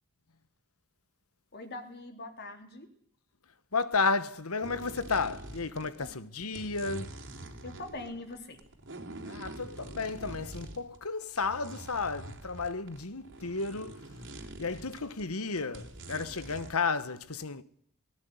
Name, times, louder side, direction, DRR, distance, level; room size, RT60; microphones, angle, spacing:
voice 1, 1.5-2.9 5.8-6.2 7.6-8.6, left 2 dB, 50° left, 3.5 m, -43 dB
voice 2, 3.7-7.1 9.3-14.0 14.6-17.6, left 4 dB, 75° left, 1.4 m, -32 dB
sound 1, 4.6-6.1 6.4-11.0 11.3-15.3 15.6-16.7, right 2 dB, 60° right, 3.6 m, -45 dB
19.0 x 17.5 x 9.6 m
head